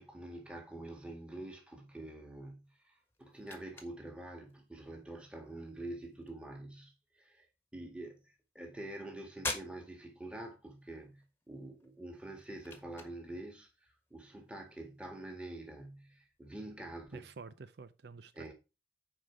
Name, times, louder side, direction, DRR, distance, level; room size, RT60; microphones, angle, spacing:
voice 1, 0.0-7.5 7.7-17.3 18.3-18.5, right 1 dB, 5° right, 1.8 m, -46 dB
sound 1, 2.6-17.1, left 3 dB, 15° left, 1.4 m, -50 dB
voice 2, 17.1-18.5, right 4 dB, 70° right, 0.5 m, -49 dB
9.1 x 5.0 x 4.9 m
head